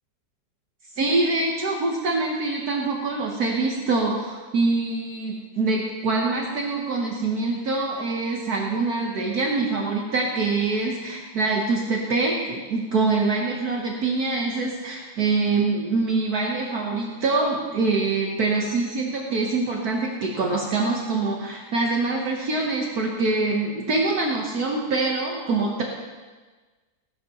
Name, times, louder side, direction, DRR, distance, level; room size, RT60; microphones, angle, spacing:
voice 1, 0.9-25.8, right 3 dB, 60° right, -1 dB, 1.6 m, -24 dB
17.0 x 12.0 x 3.0 m, 1.3 s
omnidirectional pair, 1.8 m